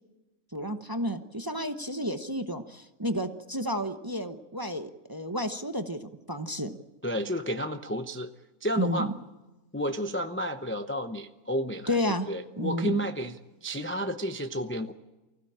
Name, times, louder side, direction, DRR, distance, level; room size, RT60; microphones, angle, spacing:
voice 1, 0.5-6.8 8.8-9.1 11.9-12.3 12.6-13.0, equal, 20° right, 7 dB, 0.8 m, -31 dB
voice 2, 7.0-8.3 8.6-9.1 9.7-14.9, equal, 10° left, 7 dB, 0.6 m, -32 dB
24.5 x 16.0 x 8.7 m, 1.1 s
omnidirectional pair, 1.6 m